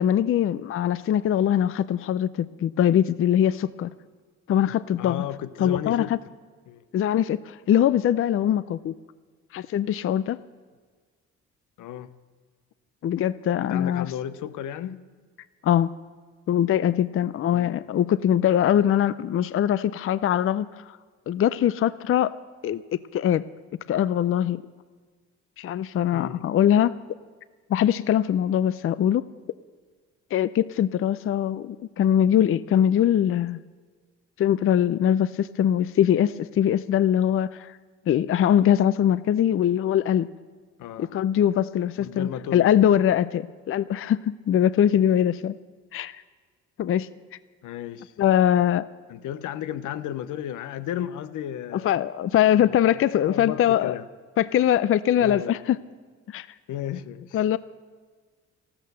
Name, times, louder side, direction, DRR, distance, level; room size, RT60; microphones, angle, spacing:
voice 1, 0.0-3.9 4.5-5.2 5.6-6.2 6.9-8.9 9.5-10.4 13.0-14.1 15.6-15.9 16.5-21.0 21.3-22.3 22.6-22.8 23.1-23.4 23.9-24.6 25.6-26.9 27.7-29.3 30.3-33.6 34.4-37.8 38.1-40.3 41.0-45.6 45.9-46.2 46.8-47.1 48.2-48.8 51.7-53.9 54.4-55.8 56.3-56.5 57.3-57.6, left 10 dB, 45° left, 17 dB, 0.5 m, -22 dB
voice 2, 5.0-6.1 6.7-6.8 11.8-12.1 13.6-15.0 17.5-17.8 26.1-26.4 40.8-41.1 42.0-42.7 47.6-48.1 49.1-51.9 52.6-52.7 53.2-54.1 55.2-55.6 56.7-57.4, left 10 dB, 80° left, 14 dB, 0.7 m, -34 dB
14.0 x 13.0 x 6.7 m, 1.5 s
cardioid pair, 90°, 30 cm